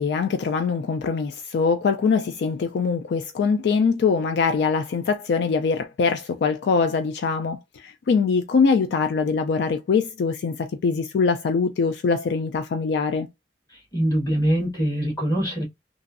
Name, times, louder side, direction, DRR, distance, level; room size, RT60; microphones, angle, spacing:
voice 1, 0.0-13.3, left 5 dB, 65° left, 0.3 m, -23 dB
voice 2, 13.7-15.6, right 1 dB, 20° left, 1.6 m, -23 dB
3.0 x 2.5 x 2.5 m
head